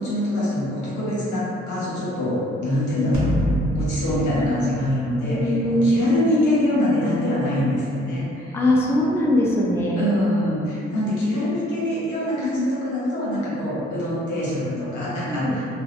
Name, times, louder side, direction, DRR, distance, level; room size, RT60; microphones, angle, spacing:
voice 1, 0.0-3.3 3.7-5.4 5.7-8.6 10.0-15.6, left 1 dB, 80° left, -9 dB, 0.9 m, -24 dB
sound 1, 3.1-5.7, right 1 dB, 70° right, 0.6 m, -26 dB
voice 2, 5.2-6.1 8.5-10.0 15.3-15.6, left 1 dB, 10° left, -3 dB, 0.3 m, -21 dB
2.6 x 2.0 x 2.4 m, 2.7 s
supercardioid pair, 55°, 29 cm